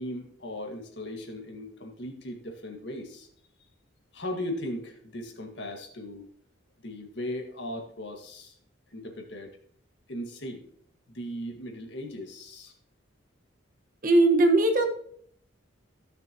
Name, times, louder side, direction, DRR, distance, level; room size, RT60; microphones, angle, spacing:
voice 1, 0.0-3.3 4.1-6.3 6.8-8.5 8.9-9.5 10.1-10.6 11.1-12.7, left 1 dB, 55° left, 2 dB, 1.8 m, -37 dB
voice 2, 14.0-14.8, right 2 dB, 40° right, 3 dB, 1.3 m, -19 dB
15.5 x 6.8 x 3.0 m, 0.62 s
head